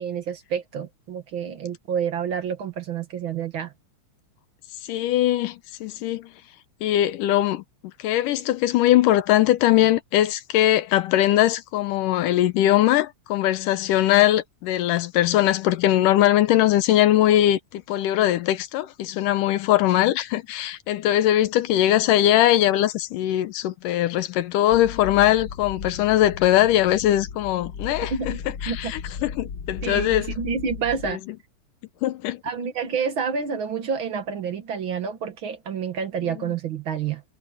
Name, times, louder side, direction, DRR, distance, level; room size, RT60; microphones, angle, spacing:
voice 1, 0.0-3.7 28.1-28.4 28.7-28.9 29.8-31.2 32.4-37.2, right 6 dB, 50° right, 1.7 m, -28 dB
voice 2, 4.8-6.3 6.8-7.6 8.0-28.4 28.6-30.3 31.0-31.2 32.0-32.4, left 13 dB, 85° left, 2.5 m, -21 dB
sound 1, 24.7-31.1, left 6 dB, 70° left, 1.0 m, -36 dB
omnidirectional pair, 3.6 m